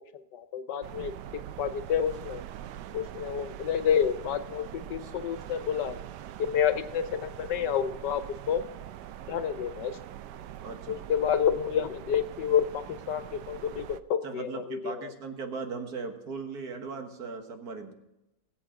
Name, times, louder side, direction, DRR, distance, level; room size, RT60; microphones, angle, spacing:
voice 1, 0.1-1.1 1.6-2.4 2.9-6.0 6.4-8.6 9.3-10.0 10.9-13.8 14.1-15.1, left 8 dB, 75° left, 10 dB, 1.6 m, -29 dB
sound 1, 0.8-14.0, right 11 dB, 75° right, 1.2 m, -43 dB
voice 2, 10.6-11.0 14.2-17.9, right 4 dB, 60° right, 5 dB, 1.9 m, -38 dB
20.5 x 8.0 x 3.8 m, 0.92 s
omnidirectional pair, 1.9 m